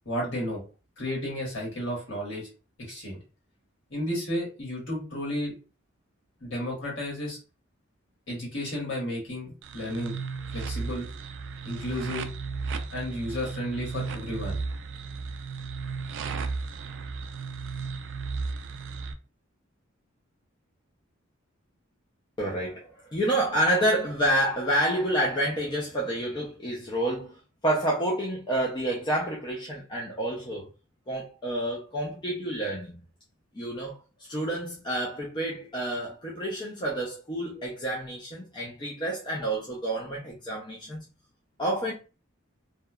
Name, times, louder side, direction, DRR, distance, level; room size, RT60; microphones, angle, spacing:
voice 1, 0.0-0.6 1.0-2.5 2.9-3.2 3.9-5.5 6.4-7.4 8.3-10.1 10.5-11.1 11.6-12.3 12.9-14.6, left 1 dB, 65° left, 1.4 m, -32 dB
sound 1, 9.6-19.1, right 4 dB, 60° right, 0.3 m, -35 dB
voice 2, 22.4-30.7 31.1-33.1 33.5-34.0 34.3-41.0 41.6-41.9, right 1 dB, 20° left, 0.4 m, -29 dB
2.8 x 2.2 x 2.3 m
head